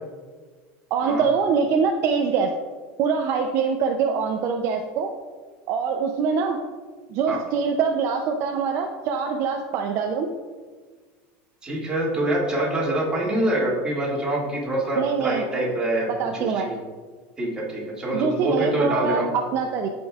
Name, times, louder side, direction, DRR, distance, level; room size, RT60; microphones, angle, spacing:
voice 1, 0.9-2.5 3.0-5.1 5.7-6.6 7.1-10.3 15.0-15.4 16.1-16.7 18.1-19.9, right 5 dB, 45° right, 3 dB, 0.5 m, -24 dB
voice 2, 11.6-16.1 16.3-16.8 17.4-19.3, right 1 dB, 15° right, -5 dB, 2.0 m, -25 dB
14.0 x 5.2 x 2.4 m, 1.5 s
cardioid pair, 155°, 6 cm